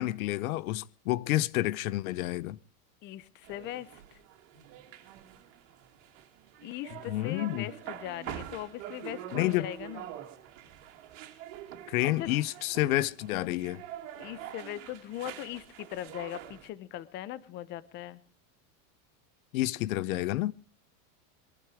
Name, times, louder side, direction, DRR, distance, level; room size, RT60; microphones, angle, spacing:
voice 1, 0.0-2.6 7.1-7.7 9.3-9.7 11.9-13.8 19.5-20.5, left 16 dB, 85° left, 0.7 m, -29 dB
voice 2, 3.0-4.2 6.6-10.1 12.0-12.4 14.2-18.2, left 13 dB, 25° left, 0.7 m, -40 dB
sound 1, 3.4-16.7, right 11 dB, 60° right, 2.6 m, -45 dB
22.0 x 12.5 x 4.8 m
supercardioid pair, 170°, 41 cm